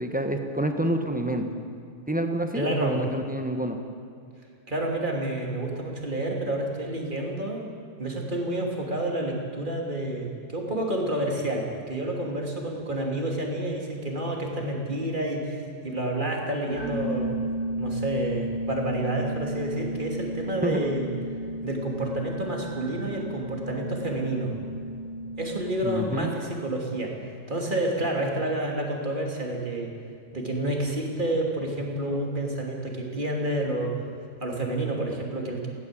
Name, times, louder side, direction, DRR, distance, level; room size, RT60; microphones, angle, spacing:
voice 1, 0.0-1.4 2.1-3.8 20.6-20.9 25.8-26.3, right 1 dB, 5° right, 5 dB, 1.4 m, -27 dB
voice 2, 2.5-3.0 4.7-7.7 8.0-17.3 17.8-21.1 21.6-24.6 25.4-29.9 30.3-33.9 34.4-35.7, right 1 dB, 30° right, 0 dB, 3.1 m, -29 dB
sound 1, 16.7-26.0, equal, 80° right, 5.7 m, -33 dB
19.5 x 17.0 x 7.8 m, 2.4 s
omnidirectional pair, 1.7 m